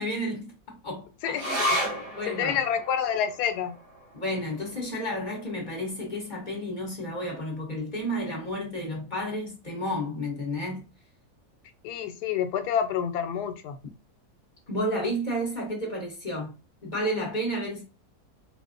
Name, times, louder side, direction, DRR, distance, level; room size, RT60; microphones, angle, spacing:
voice 1, 0.0-2.6 4.1-10.9 14.7-16.5 16.8-17.8, equal, 35° left, 1.1 m, -32 dB
voice 2, 1.2-1.8 2.4-3.7 11.8-13.8, left 8 dB, 90° left, 1.1 m, -28 dB
sound 1, 1.3-8.1 8.4-8.5 8.9-9.5 10.1-10.2, equal, 40° right, 0.8 m, -35 dB
4.3 x 2.1 x 2.5 m
omnidirectional pair, 1.6 m